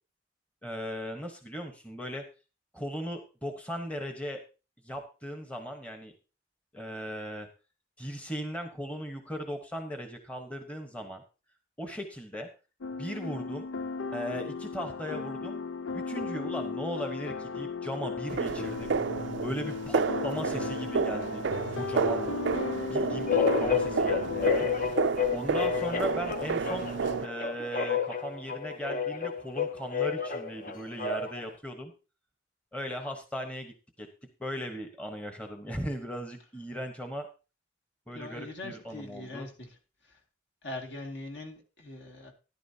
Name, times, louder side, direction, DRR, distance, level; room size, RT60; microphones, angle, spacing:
voice 1, 0.6-2.2 2.7-4.4 4.8-6.1 6.7-7.5 8.0-11.2 11.8-12.5 12.9-13.7 14.1-15.6 15.9-18.9 19.4-22.4 22.9-24.7 25.3-26.9 27.2-31.9 32.7-34.1 34.4-37.3 38.1-39.5, equal, 5° left, 1.0 m, -37 dB
sound 1, 12.8-24.5, left 4 dB, 80° left, 0.5 m, -36 dB
sound 2, 18.3-27.3, right 5 dB, 65° right, 0.4 m, -31 dB
sound 3, 23.3-31.5, left 6 dB, 45° left, 0.8 m, -30 dB
voice 2, 38.1-39.7 40.1-40.2 40.6-42.3, left 2 dB, 60° left, 2.2 m, -42 dB
13.0 x 11.0 x 2.8 m
head